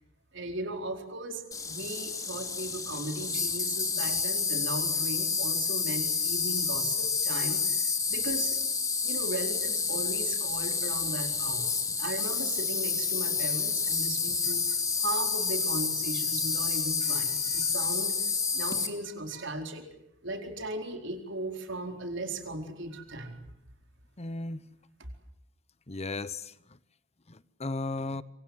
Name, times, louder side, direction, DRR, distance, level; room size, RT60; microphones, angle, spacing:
voice 1, 0.3-7.8 8.1-8.6 9.0-11.7 12.0-18.1 18.5-19.9 20.2-23.5, right 2 dB, 65° right, 4.4 m, -37 dB
Insect, 1.5-18.9, left 5 dB, 20° left, 2.9 m, -29 dB
voice 2, 24.2-24.6 25.9-26.5 27.3-28.2, left 2 dB, 35° left, 1.0 m, -35 dB
26.5 x 25.0 x 7.9 m
head